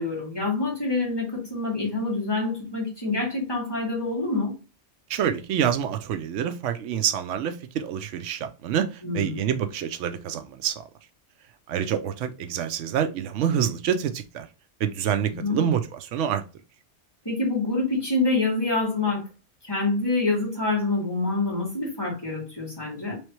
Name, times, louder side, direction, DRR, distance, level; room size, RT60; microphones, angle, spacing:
voice 1, 0.0-4.5 9.0-9.5 15.4-15.6 17.3-19.2 19.6-23.2, left 3 dB, 20° left, 2.1 m, -26 dB
voice 2, 5.1-10.8 11.7-14.5 14.8-16.4, right 9 dB, 90° right, 0.9 m, -27 dB
3.5 x 3.2 x 3.0 m
omnidirectional pair, 1.2 m